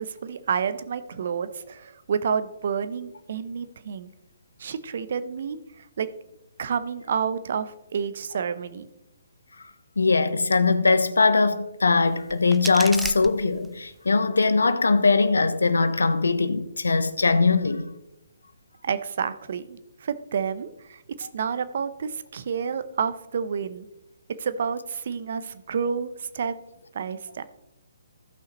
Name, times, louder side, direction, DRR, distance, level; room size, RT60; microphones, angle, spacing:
voice 1, 0.0-4.1 4.6-6.1 6.6-8.9 18.8-23.9 24.4-26.5 26.9-27.4, right 6 dB, 55° right, 0.7 m, -29 dB
voice 2, 10.0-17.9, left 4 dB, 85° left, 0.9 m, -21 dB
sound 1, 12.0-14.0, right 4 dB, 5° right, 0.3 m, -36 dB
15.5 x 5.7 x 3.1 m
figure-of-eight pair, 140°, 0 cm